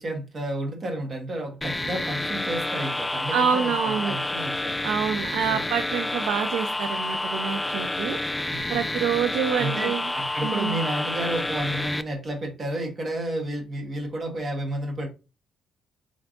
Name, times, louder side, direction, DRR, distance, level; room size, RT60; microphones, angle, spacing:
voice 1, 0.0-4.7 5.5-5.6 8.5-8.9 9.6-15.1, right 1 dB, 40° right, 1.4 m, -31 dB
sound 1, 1.6-12.0, left 2 dB, 15° left, 0.3 m, -29 dB
voice 2, 3.3-4.2 4.8-8.2 8.7-10.1 10.4-10.8, right 7 dB, 85° right, 0.4 m, -27 dB
3.7 x 3.4 x 2.5 m
cardioid pair, 90°, 0 cm